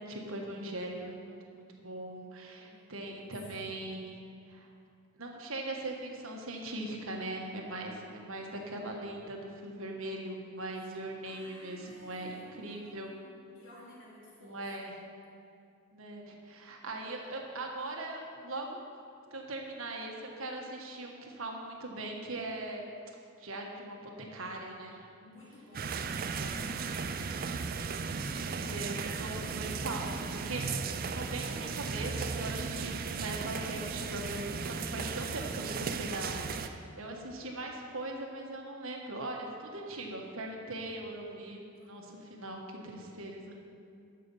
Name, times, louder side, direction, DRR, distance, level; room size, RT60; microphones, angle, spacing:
voice 1, 0.0-4.2 4.5-4.7 5.2-13.1 14.4-14.9 15.9-18.8 19.3-22.9 23.4-25.0 26.4-26.6 28.4-30.1 30.4-30.7 31.1-43.6, right 2 dB, 70° right, 1 dB, 1.5 m, -40 dB
voice 2, 2.6-3.7 10.8-10.9 11.2-14.9 25.2-25.9 26.5-27.2 35.4-36.3 41.7-42.2, left 1 dB, 60° left, -6 dB, 3.0 m, -55 dB
sound 1, 25.7-36.7, right 5 dB, 40° right, 0.4 m, -36 dB
12.5 x 6.8 x 5.5 m, 2.4 s
head